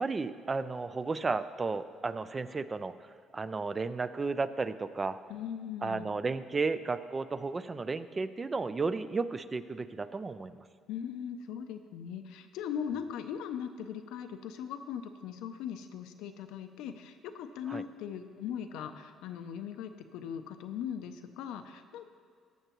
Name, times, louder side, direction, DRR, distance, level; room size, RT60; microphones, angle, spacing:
voice 1, 0.0-5.2 5.8-10.6 17.7-17.8, right 4 dB, 25° right, 13 dB, 0.3 m, -33 dB
voice 2, 5.3-6.1 10.9-22.1, left 8 dB, 85° left, 8 dB, 0.5 m, -39 dB
14.5 x 6.7 x 3.0 m, 2.2 s
cardioid pair, 95°, 0 cm